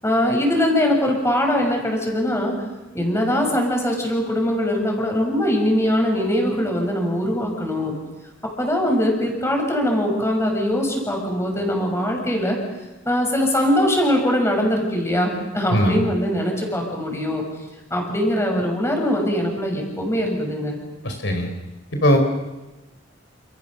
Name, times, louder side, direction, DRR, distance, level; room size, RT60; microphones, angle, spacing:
voice 1, 0.0-2.5 2.9-7.9 8.6-12.6 13.0-17.4 17.9-20.8, equal, 15° left, 2 dB, 6.7 m, -21 dB
voice 2, 21.0-21.5 22.0-22.2, equal, 70° left, 5 dB, 4.3 m, -19 dB
29.5 x 28.5 x 6.7 m, 1.1 s
head